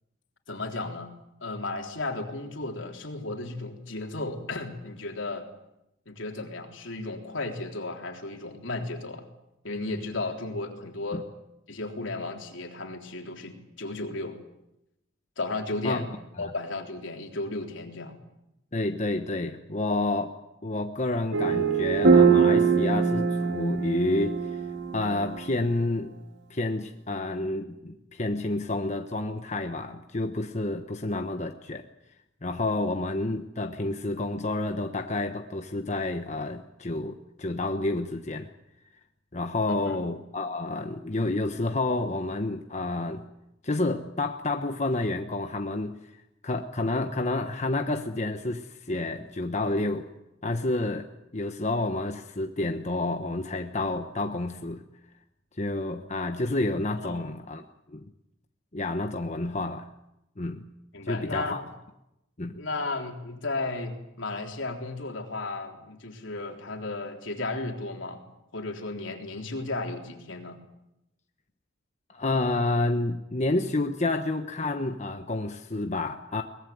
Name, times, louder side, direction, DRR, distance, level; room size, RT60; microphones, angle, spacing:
voice 1, 0.5-1.1 1.4-5.5 6.1-9.3 9.6-11.3 11.7-14.4 15.4-16.1 16.4-18.2 39.7-40.0 57.0-57.3 60.9-61.6 62.5-68.3 68.5-70.6, left 2 dB, 75° left, 3 dB, 3.7 m, -34 dB
voice 2, 18.7-20.4 20.6-24.6 24.9-26.1 26.5-31.9 32.4-38.5 39.3-43.2 43.6-46.1 46.4-50.1 50.4-54.8 55.6-58.1 58.7-59.9 60.4-60.6 61.0-61.6 62.4-62.6 72.1-76.4, left 2 dB, 35° left, 6 dB, 1.1 m, -29 dB
sound 1, 21.3-25.8, right 5 dB, 65° right, 1.9 m, -22 dB
23.0 x 19.5 x 9.4 m, 0.88 s
head